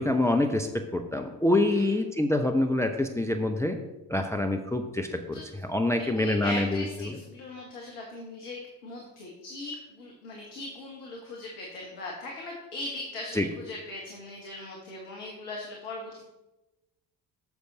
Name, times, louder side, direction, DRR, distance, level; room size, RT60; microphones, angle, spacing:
voice 1, 0.0-3.8 4.1-5.4 5.7-7.2 13.3-13.5, left 1 dB, 5° left, 5 dB, 0.6 m, -26 dB
voice 2, 5.9-16.3, left 2 dB, 70° left, -1 dB, 1.5 m, -39 dB
9.1 x 6.8 x 3.9 m, 1.0 s
figure-of-eight pair, 45°, 48 cm